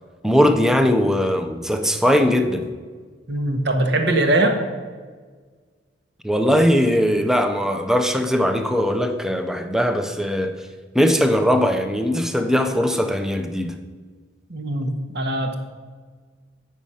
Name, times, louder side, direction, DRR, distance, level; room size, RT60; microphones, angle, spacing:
voice 1, 0.2-2.7 6.2-10.6 10.9-13.7, equal, 5° right, 6 dB, 0.6 m, -20 dB
voice 2, 3.3-4.6 14.5-15.6, right 1 dB, 60° right, 5 dB, 1.1 m, -21 dB
8.8 x 6.3 x 5.5 m, 1.5 s
head